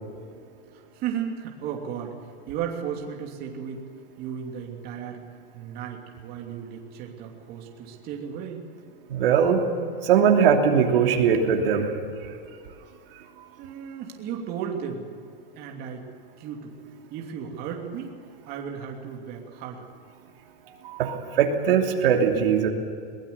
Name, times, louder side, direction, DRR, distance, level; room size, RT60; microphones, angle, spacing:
voice 1, 0.7-2.1 2.5-3.8 4.2-5.2 5.5-8.6 13.6-15.1 15.6-16.1 16.4-16.7 17.1-18.1 18.5-19.9, right 8 dB, 30° right, 1 dB, 2.9 m, -34 dB
voice 2, 9.1-9.6 10.0-11.9 20.8-22.7, right 7 dB, 75° right, 2 dB, 3.0 m, -20 dB
22.5 x 21.0 x 7.0 m, 2.4 s
supercardioid pair, 155°, 29 cm